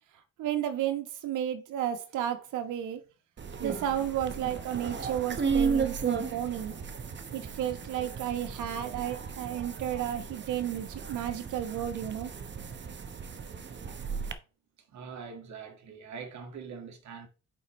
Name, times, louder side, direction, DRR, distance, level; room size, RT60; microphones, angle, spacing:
voice 1, 0.4-3.0 3.6-6.7 7.3-12.3, right 10 dB, 90° right, 1.2 m, -32 dB
sound 1, 3.4-14.3, right 6 dB, 40° right, 1.0 m, -35 dB
voice 2, 14.9-17.3, right 6 dB, 65° right, 1.9 m, -43 dB
9.8 x 4.3 x 3.1 m
cardioid pair, 90°, 30 cm